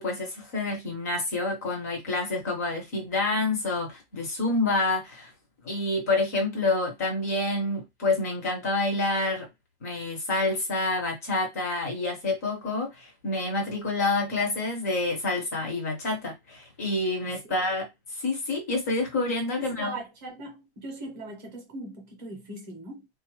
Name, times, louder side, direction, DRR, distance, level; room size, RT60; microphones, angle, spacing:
voice 1, 0.0-5.3 5.6-9.5 9.8-17.8 18.1-19.9, left 2 dB, 15° left, 0.4 m, -28 dB
voice 2, 17.2-17.6 19.6-23.1, right 2 dB, 20° right, 0.7 m, -40 dB
3.7 x 2.3 x 2.9 m
hypercardioid pair, 175°, 33 cm